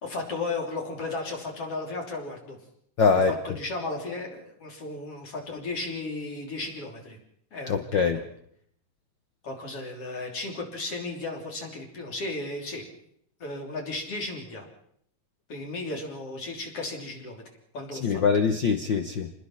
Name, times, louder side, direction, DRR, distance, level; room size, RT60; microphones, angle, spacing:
voice 1, 0.0-2.6 3.5-7.2 7.5-8.2 9.4-12.8 13.4-14.7 15.5-17.4 17.7-18.2, left 2 dB, 45° left, 0 dB, 4.2 m, -35 dB
voice 2, 3.0-3.3 7.7-8.2 17.9-19.3, left 5 dB, 90° left, 8 dB, 1.0 m, -23 dB
27.0 x 20.5 x 5.8 m, 0.69 s
omnidirectional pair, 3.6 m